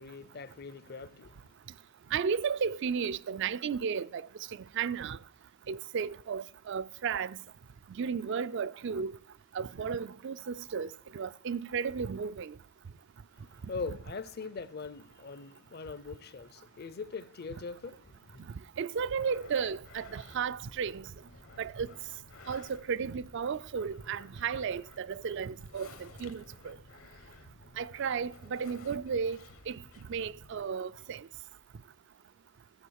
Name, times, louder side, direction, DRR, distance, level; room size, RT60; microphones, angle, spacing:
voice 1, 0.0-1.5 13.3-18.5, left 4 dB, 45° left, 0.6 m, -42 dB
voice 2, 2.1-4.2 4.8-5.2 5.7-7.4 8.0-9.1 9.5-10.9 11.1-12.5 18.8-21.0 21.6-21.9 22.5-26.8 27.8-29.4 29.7-29.8 30.1-31.2, right 6 dB, 55° right, 0.4 m, -34 dB
sound 1, 19.2-30.7, left 3 dB, 75° left, 1.5 m, -54 dB
14.0 x 7.8 x 6.4 m
head